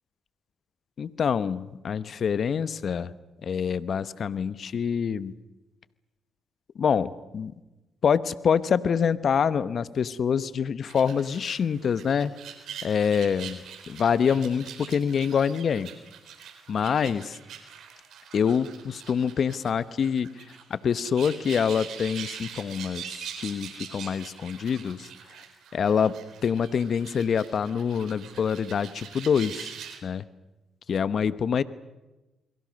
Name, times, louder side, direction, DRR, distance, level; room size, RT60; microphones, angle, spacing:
voice 1, 1.0-3.1 3.4-5.3 6.8-7.5 8.0-12.3 12.8-13.6 13.9-15.9 16.7-17.3 18.3-20.3 20.7-23.0 23.4-25.1 25.7-29.7 30.0-30.3 30.9-31.6, left 7 dB, 55° left, 15 dB, 0.9 m, -26 dB
sound 1, 10.8-30.0, right 8 dB, 75° right, 3.8 m, -43 dB
28.5 x 22.5 x 6.5 m, 1.1 s
supercardioid pair, 55°, 0 cm